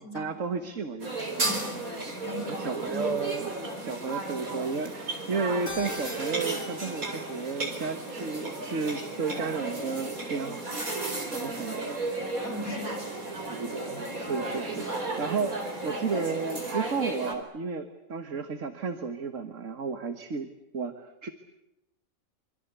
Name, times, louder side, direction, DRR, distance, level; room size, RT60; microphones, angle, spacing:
voice 1, 0.0-1.6 2.5-10.6 11.2-12.3 13.5-21.3, right 5 dB, 65° right, 8 dB, 1.9 m, -33 dB
sound 1, 1.0-17.3, right 2 dB, 80° right, 4.9 m, -34 dB
voice 2, 1.4-3.1 12.4-13.1, left 1 dB, 80° left, 3 dB, 4.5 m, -39 dB
Keyboard (musical), 5.7-10.3, left 3 dB, 55° left, 2.7 m, -45 dB
26.0 x 26.0 x 8.2 m, 0.89 s
omnidirectional pair, 1.5 m